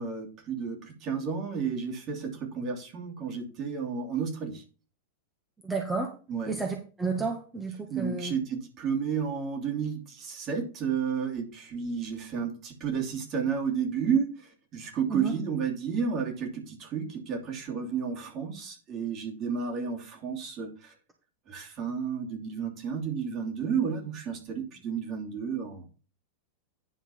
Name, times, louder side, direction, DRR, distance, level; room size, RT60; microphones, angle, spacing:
voice 1, 0.0-4.6 6.3-6.5 7.9-14.3 14.7-20.9 21.5-25.8, right 6 dB, 35° right, 2 dB, 2.9 m, -32 dB
voice 2, 5.6-6.1 6.5-8.3 15.1-15.3, right 4 dB, 10° right, 2 dB, 1.6 m, -31 dB
9.9 x 4.6 x 5.7 m, 0.36 s
figure-of-eight pair, 90°, 0 cm